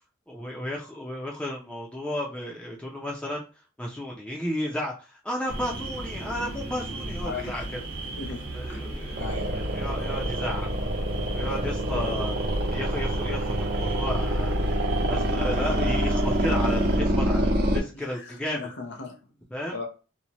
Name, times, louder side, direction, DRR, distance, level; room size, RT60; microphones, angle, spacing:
voice 1, 0.3-3.4 3.8-7.6 8.5-10.7 11.3-14.6 15.1-18.6 19.5-19.8, left 1 dB, 5° left, -2 dB, 0.4 m, -33 dB
sound 1, 5.5-17.0, right 1 dB, 80° right, 1.0 m, -36 dB
voice 2, 7.2-7.5 8.2-8.4 8.7-9.8 11.9-12.3 17.9-19.2 19.7-19.9, left 3 dB, 55° left, 2 dB, 0.7 m, -38 dB
sound 2, 9.2-17.8, right 1 dB, 50° right, 0.5 m, -26 dB
2.7 x 2.0 x 2.9 m, 0.33 s
head